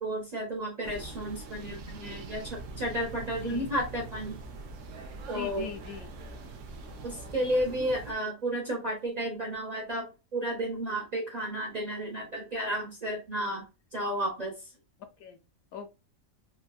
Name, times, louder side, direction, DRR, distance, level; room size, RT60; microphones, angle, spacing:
voice 1, 0.0-4.4 5.3-5.7 7.0-13.7 13.9-14.5, right 1 dB, 45° right, -1 dB, 0.5 m, -32 dB
sound 1, 0.8-8.1, right 3 dB, 70° right, 0.9 m, -43 dB
voice 2, 3.4-3.7 5.3-6.1 15.2-15.4 15.7-15.9, left 8 dB, 85° left, 7 dB, 1.1 m, -41 dB
3.4 x 2.2 x 2.2 m, 0.29 s
omnidirectional pair, 1.4 m